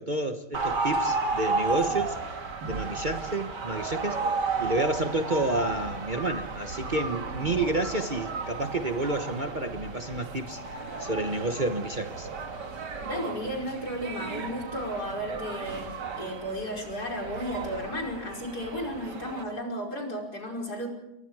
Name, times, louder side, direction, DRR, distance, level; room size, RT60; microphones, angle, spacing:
voice 1, 0.0-2.2 2.7-4.2 4.6-12.3, right 2 dB, 30° right, 5 dB, 1.2 m, -30 dB
sound 1, 0.5-19.4, right 4 dB, 90° right, 2.5 m, -33 dB
voice 2, 13.0-20.9, equal, 65° left, 0 dB, 5.8 m, -34 dB
30.0 x 23.0 x 4.9 m, 0.91 s
omnidirectional pair, 1.8 m